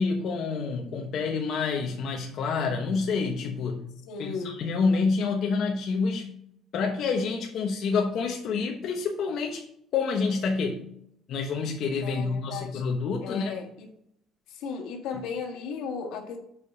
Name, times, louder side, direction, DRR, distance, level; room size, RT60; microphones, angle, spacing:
voice 1, 0.0-3.9 4.2-6.3 6.7-9.6 9.9-10.9 11.3-13.6, left 4 dB, 55° left, 1 dB, 1.0 m, -28 dB
voice 2, 4.1-4.6 12.0-12.8 13.2-13.9 14.5-16.4, left 5 dB, 80° left, 3 dB, 1.8 m, -35 dB
7.5 x 5.0 x 5.4 m, 0.71 s
cardioid pair, 155°, 0 cm